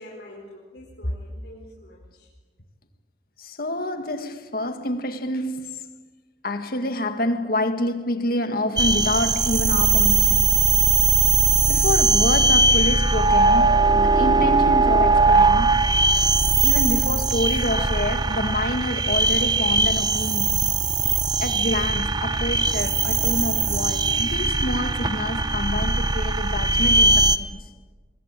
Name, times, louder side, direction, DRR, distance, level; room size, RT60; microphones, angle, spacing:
voice 1, 0.0-2.3, equal, 75° left, 4.6 m, -37 dB
voice 2, 3.4-5.9 6.4-10.6 11.7-15.8 16.6-20.7 21.4-27.7, left 1 dB, 55° left, 2.0 m, -27 dB
sound 1, 8.8-27.4, right 3 dB, 25° right, 0.8 m, -20 dB
Bowed string instrument, 21.9-26.5, equal, 40° right, 7.2 m, -43 dB
24.5 x 22.0 x 9.2 m
head